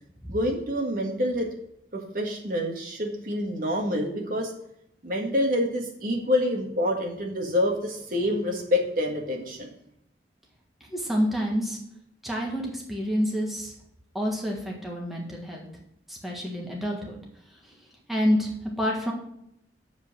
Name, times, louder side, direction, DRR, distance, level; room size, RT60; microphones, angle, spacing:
voice 1, 0.3-1.5 1.9-4.5 5.0-9.7, left 1 dB, 50° right, 1 dB, 1.8 m, -27 dB
voice 2, 10.9-11.8 12.2-13.7 14.1-15.7 16.1-17.2 18.1-18.5 18.8-19.1, equal, ahead, -2 dB, 1.6 m, -28 dB
7.4 x 5.5 x 7.4 m, 0.77 s
head